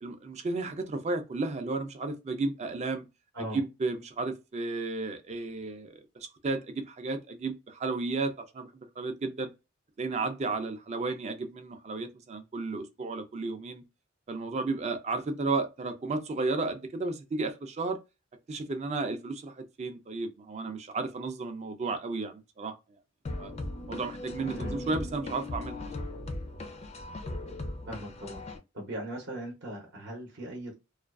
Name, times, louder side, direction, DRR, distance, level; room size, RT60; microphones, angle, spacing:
voice 1, 0.0-3.1 3.5-8.7 9.0-9.5 10.0-13.8 14.3-18.0 18.5-22.8 23.4-23.5 23.9-25.8, right 3 dB, 35° right, 0.4 m, -33 dB
sound 1, 23.2-28.6, left 2 dB, 30° left, 0.4 m, -38 dB
voice 2, 27.9-28.4 28.7-30.8, right 1 dB, 60° right, 0.7 m, -39 dB
2.4 x 2.2 x 2.3 m
head